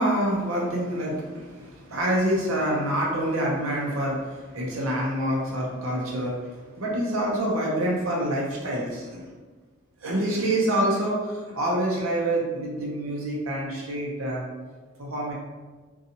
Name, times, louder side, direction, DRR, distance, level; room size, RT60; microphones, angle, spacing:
voice 1, 0.0-9.2 10.0-14.4 15.0-15.3, right 1 dB, 85° right, -3 dB, 0.6 m, -26 dB
2.8 x 2.3 x 2.6 m, 1.4 s
head